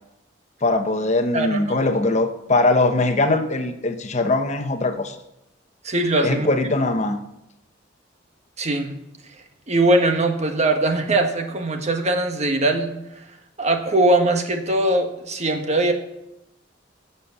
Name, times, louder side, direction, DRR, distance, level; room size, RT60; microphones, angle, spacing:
voice 1, 0.6-5.2 6.2-7.2, left 2 dB, 40° left, 7 dB, 0.9 m, -21 dB
voice 2, 1.3-1.8 5.8-6.5 8.6-8.9 9.7-12.9 13.6-15.9, right 2 dB, 35° right, 5 dB, 1.5 m, -21 dB
15.0 x 7.0 x 7.1 m, 0.86 s
head